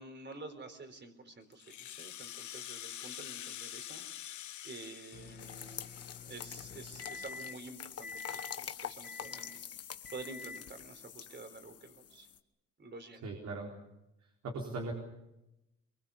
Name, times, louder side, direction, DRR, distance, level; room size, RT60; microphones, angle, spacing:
voice 1, 0.0-4.0 4.6-9.6 10.1-12.3 12.8-13.2, right 3 dB, 35° right, 8 dB, 4.0 m, -49 dB
Rattle (instrument), 1.5-6.3, left 12 dB, 75° left, 1.2 m, -46 dB
Microwave oven, 5.1-7.7 8.0-8.6 9.0-9.6 10.0-10.7, left 4 dB, 30° left, 1.7 m, -48 dB
sound 1, 5.4-12.4, left 9 dB, 55° left, 1.3 m, -46 dB
voice 2, 13.2-13.7 14.2-14.9, right 2 dB, 65° right, 0 dB, 4.1 m, -39 dB
24.0 x 23.0 x 7.1 m, 0.92 s
cardioid pair, 90°, 30 cm